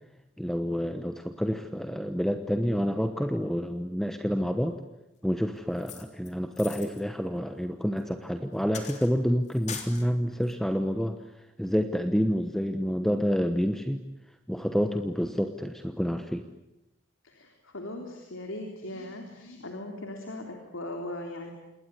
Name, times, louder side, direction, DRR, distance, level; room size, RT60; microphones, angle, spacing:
voice 1, 0.4-4.8 5.2-14.0 14.5-16.5, equal, ahead, 7 dB, 1.0 m, -28 dB
sound 1, 5.8-7.0 8.0-8.1 8.7-9.1 9.5-10.0 10.4-10.5, left 6 dB, 35° left, 3.5 m, -41 dB
voice 2, 17.2-21.5, left 1 dB, 80° left, 2 dB, 3.6 m, -39 dB
27.5 x 21.0 x 9.9 m, 0.93 s
head